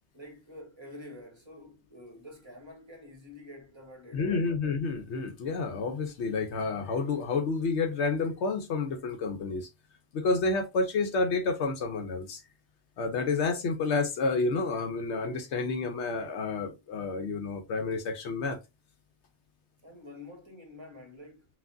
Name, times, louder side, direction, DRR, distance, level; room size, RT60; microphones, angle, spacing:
voice 1, 0.1-4.4 19.8-21.5, left 1 dB, 25° right, 1.5 m, -48 dB
voice 2, 4.1-9.7 10.1-12.4 13.0-18.6, left 3 dB, 70° left, 0.9 m, -30 dB
5.8 x 2.5 x 2.5 m
omnidirectional pair, 1.2 m